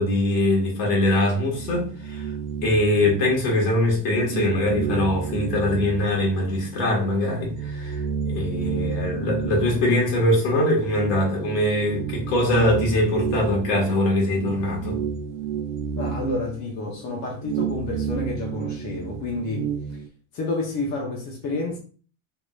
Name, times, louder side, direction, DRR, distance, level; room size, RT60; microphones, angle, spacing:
voice 1, 0.0-2.3 2.6-15.0, left 1 dB, 70° left, 1.7 m, -22 dB
sound 1, 1.5-3.8 4.1-6.8 7.2-20.1, right 7 dB, 80° right, 0.6 m, -31 dB
voice 2, 16.0-20.0 20.3-21.8, left 2 dB, 45° left, 0.9 m, -29 dB
3.6 x 2.9 x 2.4 m
supercardioid pair, 115°, 39 cm